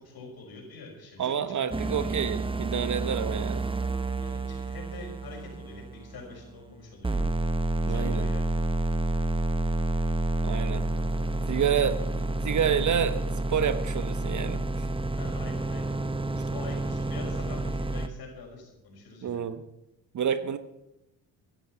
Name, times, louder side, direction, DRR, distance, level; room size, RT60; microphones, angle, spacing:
voice 1, 0.0-1.9 4.2-7.3 7.8-8.5 11.5-11.9 15.2-16.0 16.2-19.4, left 3 dB, 55° left, 1 dB, 6.0 m, -45 dB
voice 2, 1.2-3.6 7.8-8.2 10.4-10.8 11.5-12.0 12.3-14.8 19.2-19.6 20.1-20.6, right 8 dB, 40° right, 12 dB, 1.1 m, -28 dB
sound 1, 1.7-6.7 7.0-18.1, right 2 dB, 10° right, 1.1 m, -29 dB
15.5 x 11.0 x 6.0 m, 0.91 s
hypercardioid pair, 60°, 43 cm